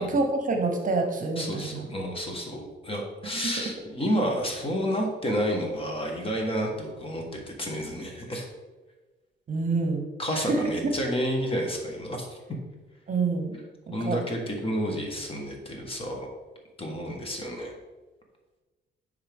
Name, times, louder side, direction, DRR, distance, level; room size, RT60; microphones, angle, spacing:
voice 1, 0.0-1.9 3.2-3.4 9.5-10.1 10.3-10.6 13.1-13.6 13.9-14.2, right 3 dB, 40° right, 4 dB, 1.0 m, -27 dB
voice 2, 1.4-8.5 10.2-12.4 13.9-16.3 16.8-17.7, equal, 30° left, 1 dB, 1.5 m, -30 dB
9.7 x 3.7 x 3.6 m, 1.2 s
cardioid pair, 90°, 20 cm